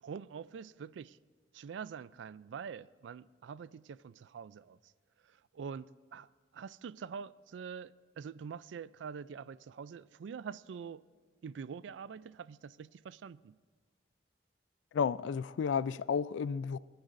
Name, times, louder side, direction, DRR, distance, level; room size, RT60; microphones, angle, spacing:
voice 1, 0.0-1.2 1.5-4.9 5.2-11.0 11.4-13.6, right 6 dB, 85° right, 0.3 m, -45 dB
voice 2, 14.9-16.8, left 6 dB, 90° left, 0.3 m, -32 dB
30.0 x 10.5 x 2.6 m
head